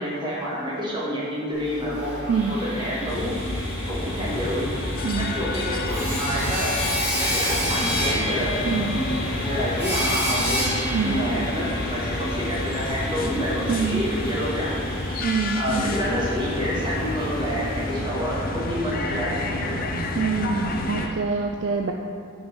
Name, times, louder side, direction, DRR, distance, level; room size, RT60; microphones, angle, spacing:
voice 1, 0.0-2.1 2.5-3.4 3.9-4.7 5.1-6.7 7.2-8.6 8.9-9.2 9.4-10.6 11.0-14.8 15.5-19.7, equal, 20° right, -7 dB, 1.5 m, -28 dB
Sawing, 1.5-19.3, equal, 5° right, 1.6 m, -31 dB
voice 2, 2.3-2.6 5.0-5.4 8.6-9.1 10.9-11.2 13.7-14.0 15.2-16.0 20.2-21.9, right 5 dB, 55° right, 3 dB, 0.3 m, -25 dB
sound 1, 3.1-21.1, left 2 dB, 45° left, 0.5 m, -30 dB
7.0 x 3.7 x 5.1 m, 2.2 s
head